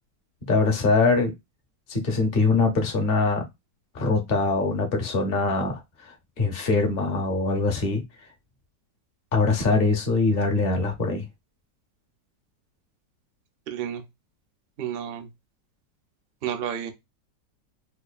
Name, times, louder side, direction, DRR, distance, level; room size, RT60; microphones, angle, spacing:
voice 1, 0.5-1.3 1.9-3.4 3.9-5.8 6.4-8.0 9.3-11.3, left 3 dB, 40° left, 0.9 m, -22 dB
voice 2, 13.7-14.0 14.8-15.3 16.4-16.9, right 9 dB, 65° right, 0.5 m, -30 dB
4.8 x 2.6 x 2.3 m
omnidirectional pair, 2.0 m